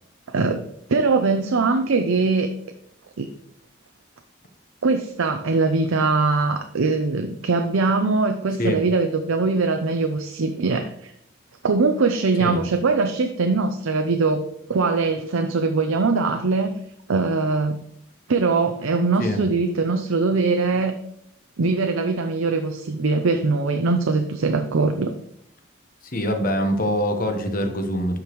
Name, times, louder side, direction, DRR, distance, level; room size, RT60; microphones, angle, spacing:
voice 1, 0.9-2.5 3.2-3.3 4.8-11.1 11.6-16.7 17.1-17.8 18.3-21.0 21.6-25.1, right 3 dB, 90° right, 6 dB, 0.6 m, -22 dB
voice 2, 26.0-28.2, equal, 45° left, 5 dB, 1.1 m, -24 dB
12.5 x 5.1 x 3.1 m, 0.75 s
head